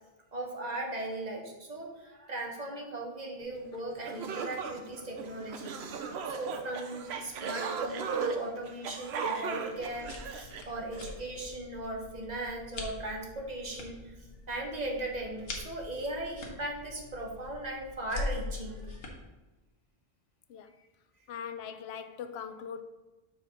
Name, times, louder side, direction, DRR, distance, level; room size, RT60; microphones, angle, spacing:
voice 1, 0.3-14.2 14.5-19.0, right 2 dB, 45° right, 1 dB, 1.1 m, -38 dB
sound 1, 3.7-3.8 4.0-11.1, right 5 dB, 90° right, 0.9 m, -37 dB
sound 2, 9.7-19.1, left 2 dB, 70° left, 1.3 m, -43 dB
voice 2, 21.3-22.8, left 7 dB, 85° left, 10 dB, 0.8 m, -41 dB
4.8 x 4.6 x 6.0 m, 1.1 s
omnidirectional pair, 1.0 m